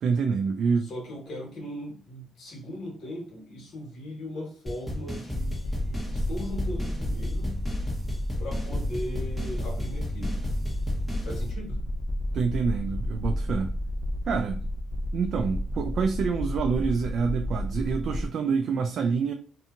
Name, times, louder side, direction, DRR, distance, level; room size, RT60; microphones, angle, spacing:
voice 1, 0.0-0.9 12.3-13.7 14.3-14.6 15.1-19.3, right 5 dB, 65° right, 0.3 m, -27 dB
voice 2, 0.8-7.6 8.4-10.4 11.2-11.8, left 1 dB, 70° left, 1.3 m, -38 dB
sound 1, 4.7-11.5, left 1 dB, 5° left, 1.2 m, -34 dB
sound 2, 5.3-18.3, left 1 dB, 20° left, 0.3 m, -31 dB
2.7 x 2.6 x 2.4 m
cardioid pair, 90°, 0 cm